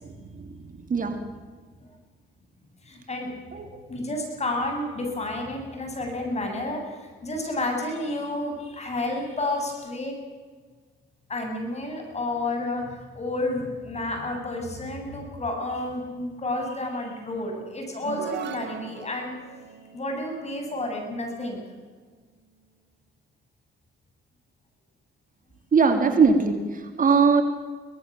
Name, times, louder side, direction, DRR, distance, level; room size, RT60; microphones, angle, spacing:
voice 1, 0.0-0.5 0.9-1.2 3.5-3.7 25.7-27.4, right 5 dB, 40° right, 5 dB, 3.2 m, -21 dB
voice 2, 2.8-3.3 3.9-10.1 11.3-19.3 19.9-21.6, left 2 dB, 35° left, 3 dB, 8.0 m, -30 dB
sound 1, 18.0-21.6, right 6 dB, 65° right, 2.8 m, -39 dB
24.0 x 18.5 x 7.7 m, 1.5 s
cardioid pair, 90°, 20 cm